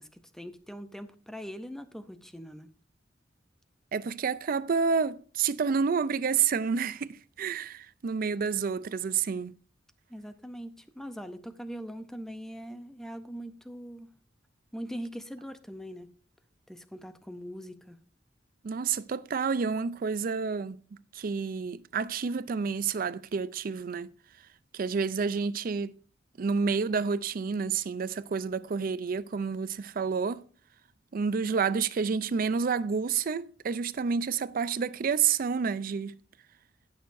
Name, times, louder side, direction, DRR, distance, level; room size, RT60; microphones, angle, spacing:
voice 1, 0.0-2.7 10.1-14.1 14.7-16.1 16.7-18.0, equal, 5° left, 0.6 m, -42 dB
voice 2, 3.9-9.5 18.6-20.8 21.1-24.1 24.7-25.9 26.4-30.4 31.1-36.1, right 5 dB, 50° right, 0.4 m, -29 dB
17.5 x 6.5 x 2.6 m
head